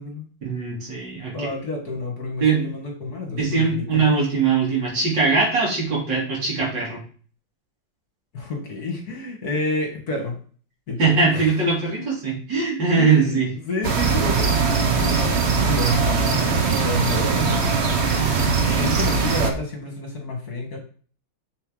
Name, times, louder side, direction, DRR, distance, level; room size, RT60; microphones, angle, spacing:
voice 1, 0.4-1.5 2.4-2.7 3.4-7.0 11.0-13.5 18.1-18.9, right 4 dB, 60° right, -4 dB, 3.8 m, -21 dB
voice 2, 1.3-4.1 8.3-10.4 10.9-11.5 13.0-14.5 14.9-17.7 18.7-20.8, left 2 dB, 50° left, 2 dB, 2.1 m, -29 dB
sound 1, 13.8-19.5, right 5 dB, 45° right, 1.0 m, -21 dB
7.0 x 6.5 x 3.9 m, 0.41 s
omnidirectional pair, 2.2 m